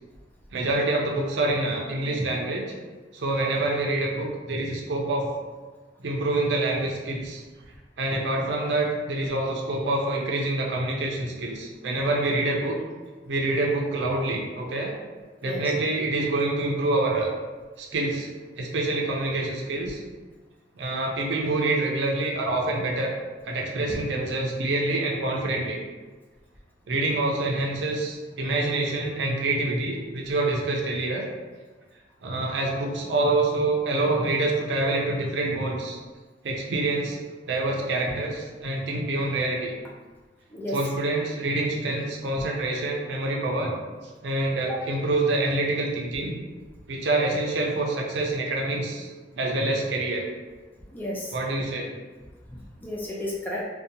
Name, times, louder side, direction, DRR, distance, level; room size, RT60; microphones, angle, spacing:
voice 1, 0.5-2.7 3.1-5.3 6.0-7.4 8.0-12.8 13.3-15.0 15.4-17.3 17.8-18.3 18.6-20.0 20.7-23.1 23.5-25.8 26.9-31.3 32.2-36.0 36.4-37.2 37.5-39.7 40.7-43.7 44.2-46.3 46.9-50.3 51.3-51.9, right 2 dB, 75° right, 0 dB, 0.5 m, -26 dB
voice 2, 50.9-51.3 52.5-53.6, left 1 dB, 10° left, -4 dB, 0.3 m, -33 dB
2.7 x 2.1 x 2.6 m, 1.3 s
head